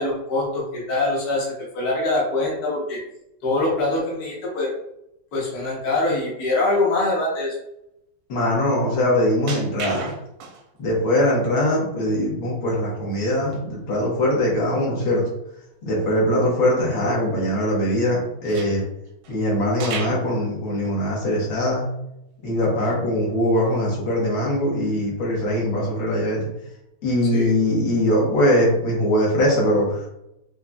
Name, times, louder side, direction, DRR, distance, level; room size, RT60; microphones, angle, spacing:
voice 1, 0.0-3.0 3.4-4.7 5.3-7.6 27.3-27.5, left 2 dB, 55° left, -4 dB, 1.3 m, -23 dB
voice 2, 8.3-10.1 10.8-15.2 15.8-18.8 19.3-21.9 22.4-26.4 27.0-30.1, left 1 dB, 70° left, -4 dB, 1.9 m, -21 dB
sound 1, 9.5-10.8 11.2-11.3 13.5-13.6 13.9-14.0 14.5-14.6 18.4-19.4 19.8-20.3 20.8-21.0 21.5-21.6 22.8-22.9 23.4-23.7 25.9-26.1, right 5 dB, 85° right, 1.4 m, -34 dB
5.6 x 2.4 x 2.2 m, 0.83 s
omnidirectional pair, 2.3 m